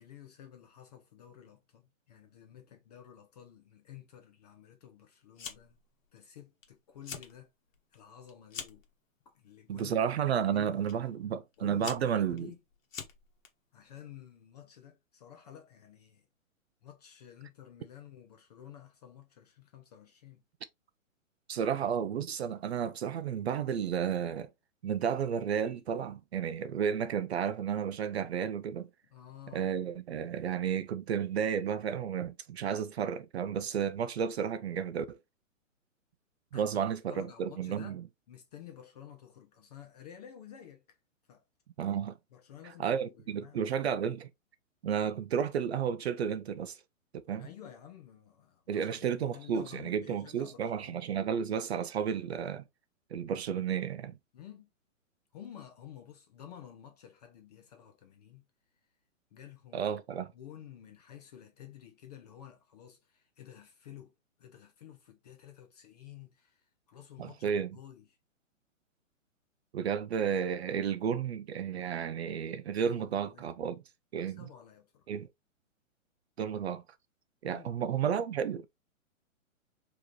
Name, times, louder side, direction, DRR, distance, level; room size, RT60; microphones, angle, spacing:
voice 1, 0.0-5.8 6.1-7.5 7.9-8.8 9.3-10.1 10.5-10.9 11.6-12.6 13.7-16.3 16.8-20.4 29.1-29.7 36.5-36.7 37.1-38.0 38.3-40.8 41.3-41.4 42.3-43.6 47.3-51.0 54.3-54.7 55.3-58.4 59.3-60.0 60.3-64.1 64.4-68.1 73.0-73.6 74.3-75.1 77.5-77.7, left 10 dB, 30° left, 0.6 m, -51 dB
Fire, 5.4-5.9 6.2-6.7 6.9-7.3 7.7-8.9 9.7-10.0 10.9-11.0 11.5-13.5, left 6 dB, 70° left, 1.3 m, -44 dB
voice 2, 9.7-12.5 21.5-24.5 24.8-28.9 29.5-35.2 36.5-38.0 41.8-42.2 42.8-44.3 44.8-46.8 47.1-47.5 48.7-52.6 53.1-54.2 59.7-60.3 67.2-67.7 69.7-73.8 74.1-74.5 75.1-75.3 76.4-76.8 77.4-78.7, right 8 dB, 55° right, 0.5 m, -32 dB
4.8 x 3.0 x 3.0 m
hypercardioid pair, 150°, 41 cm